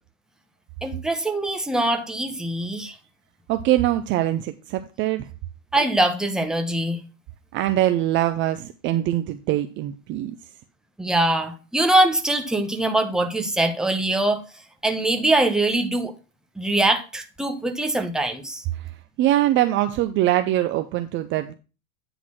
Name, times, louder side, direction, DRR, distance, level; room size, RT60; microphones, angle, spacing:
voice 1, 0.8-2.9 5.7-7.0 11.0-14.4 14.8-16.1 16.6-18.6, right 2 dB, ahead, 0.9 m, -22 dB
voice 2, 3.5-5.2 7.5-10.3 18.8-18.9 19.2-21.5, right 13 dB, 30° right, 0.5 m, -23 dB
9.5 x 4.0 x 6.1 m
hypercardioid pair, 115°, 38 cm